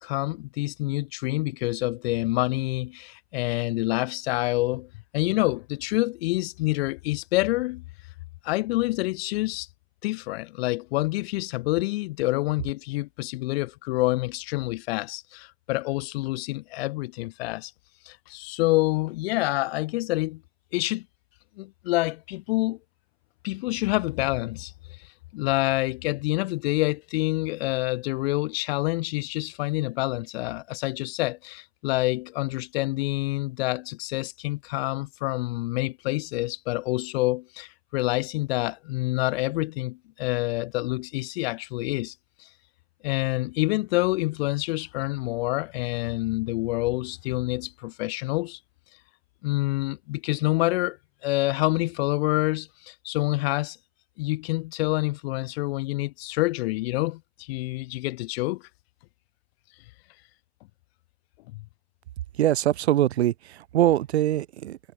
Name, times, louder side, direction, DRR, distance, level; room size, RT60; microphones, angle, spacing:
voice 1, 0.0-7.8 8.4-9.7 10.0-17.7 18.1-20.4 20.7-21.1 21.6-22.8 23.4-24.7 25.0-25.1 25.3-42.1 42.4-42.5 43.0-48.6 49.4-51.0 51.2-53.8 54.2-58.6 61.5-61.6, left 20 dB, 70° left, 4.4 m, -27 dB
voice 2, 62.4-64.8, right 13 dB, 80° right, 2.5 m, -23 dB
hypercardioid pair, 85°, 32 cm